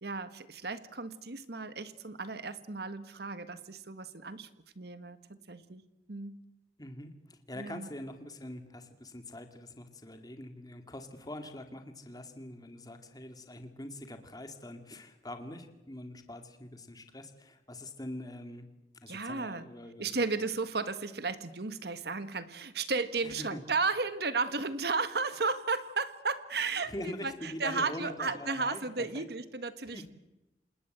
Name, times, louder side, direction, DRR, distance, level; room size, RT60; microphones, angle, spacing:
voice 1, 0.0-4.5 4.7-5.8 6.1-6.4 7.6-7.9 19.1-19.7 20.0-30.1, right 4 dB, 60° right, 12 dB, 1.6 m, -34 dB
voice 2, 6.8-18.7 19.0-20.3 23.2-23.6 26.8-28.9 29.1-29.2 29.8-30.1, left 1 dB, 20° left, 6 dB, 2.3 m, -44 dB
28.0 x 19.5 x 8.0 m, 0.99 s
head